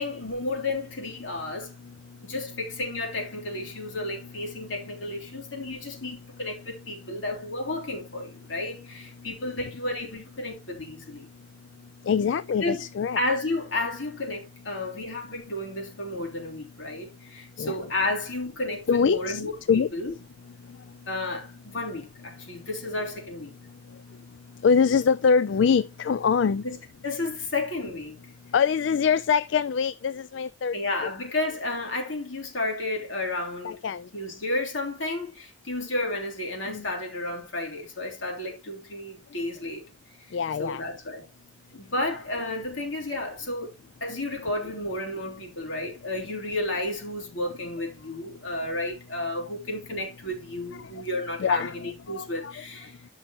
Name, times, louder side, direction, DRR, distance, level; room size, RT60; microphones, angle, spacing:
voice 1, 0.0-1.7 2.2-11.3 12.6-12.8 13.1-20.1 21.1-23.5 26.6-26.8 27.0-28.1 30.7-33.8 34.1-39.8 40.3-41.3 41.7-43.7 44.0-53.0, left 2 dB, 85° left, 3.3 m, -32 dB
voice 2, 12.1-13.2 17.6-17.8 18.9-19.9 24.6-26.6 28.5-30.8 33.6-34.1 36.7-36.9 40.3-40.8 50.7-50.8 51.4-52.5, left 6 dB, 70° left, 0.4 m, -24 dB
13.0 x 5.6 x 2.9 m
head